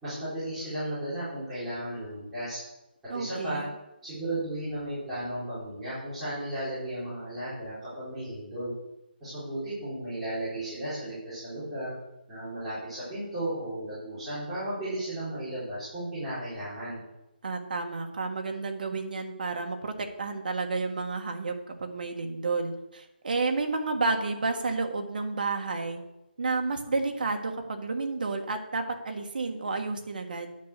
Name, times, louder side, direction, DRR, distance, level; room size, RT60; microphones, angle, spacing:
voice 1, 0.0-2.6 3.1-3.6 4.0-8.7 9.2-12.0 12.3-17.0, right 1 dB, 5° right, -16 dB, 3.9 m, -34 dB
voice 2, 3.1-3.7 17.4-26.0 26.4-30.5, right 3 dB, 55° right, 4 dB, 1.5 m, -31 dB
9.2 x 6.8 x 6.6 m, 0.92 s
hypercardioid pair, 175°, 6 cm